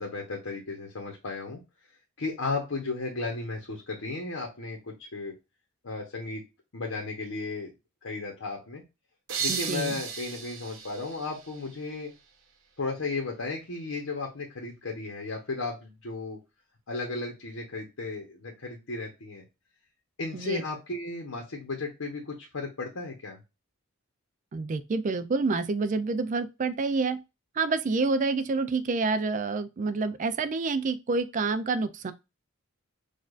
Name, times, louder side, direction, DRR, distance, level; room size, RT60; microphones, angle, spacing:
voice 1, 0.0-1.6 2.2-5.3 5.8-6.4 6.7-7.7 8.0-8.8 9.4-12.1 12.8-16.4 16.9-19.4 20.2-23.4, left 3 dB, 75° left, 0.9 m, -34 dB
sound 1, 9.3-12.1, right 6 dB, 70° right, 0.7 m, -35 dB
voice 2, 9.5-9.9 20.3-20.6 24.5-27.2 27.6-32.1, right 4 dB, 35° right, 0.3 m, -28 dB
6.4 x 2.4 x 2.4 m
head